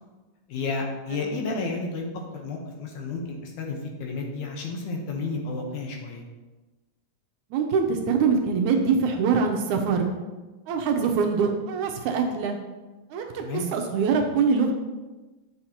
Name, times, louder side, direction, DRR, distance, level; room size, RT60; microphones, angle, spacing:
voice 1, 0.5-2.1 2.3-6.2 13.4-13.7, left 3 dB, 70° left, 1 dB, 2.3 m, -31 dB
voice 2, 7.5-10.1 10.7-12.6 13.1-13.4 13.7-14.7, right 5 dB, 80° right, 3 dB, 1.9 m, -23 dB
9.3 x 6.3 x 2.9 m, 1.2 s
omnidirectional pair, 3.7 m